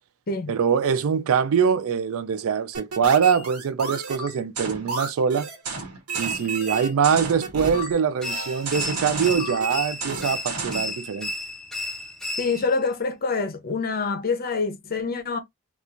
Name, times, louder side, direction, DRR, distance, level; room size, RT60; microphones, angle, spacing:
voice 1, 0.5-5.5 6.2-11.3, right 7 dB, 65° right, 0.4 m, -23 dB
sound 1, 2.7-10.9, right 4 dB, 85° right, 1.1 m, -32 dB
sound 2, 8.2-12.8, left 2 dB, ahead, 0.6 m, -33 dB
voice 2, 12.4-15.4, left 4 dB, 45° left, 0.7 m, -26 dB
4.2 x 2.4 x 2.5 m
head